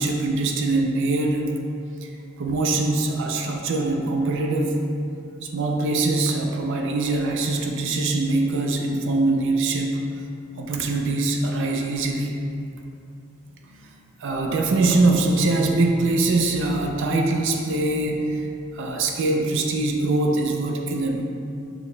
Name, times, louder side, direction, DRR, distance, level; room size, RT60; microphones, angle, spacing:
voice 1, 0.0-1.5 2.0-2.1 2.4-4.8 5.4-10.0 10.6-12.4 13.7-13.9 14.2-18.5 18.7-21.2, right 2 dB, 60° right, 1 dB, 0.3 m, -23 dB
5.7 x 2.0 x 3.2 m, 2.6 s
head